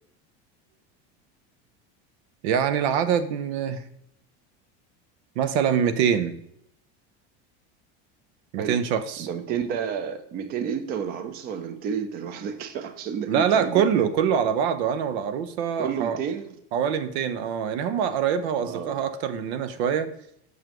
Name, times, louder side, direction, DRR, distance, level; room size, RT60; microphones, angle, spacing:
voice 1, 2.4-3.8 5.4-6.3 8.5-9.3 13.3-16.2 16.7-20.1, right 8 dB, 80° right, 12 dB, 0.8 m, -24 dB
voice 2, 9.2-14.1 15.8-16.5 18.6-19.0, right 7 dB, 30° right, 9 dB, 0.5 m, -31 dB
7.2 x 6.3 x 3.0 m, 0.74 s
cardioid pair, 170°, 32 cm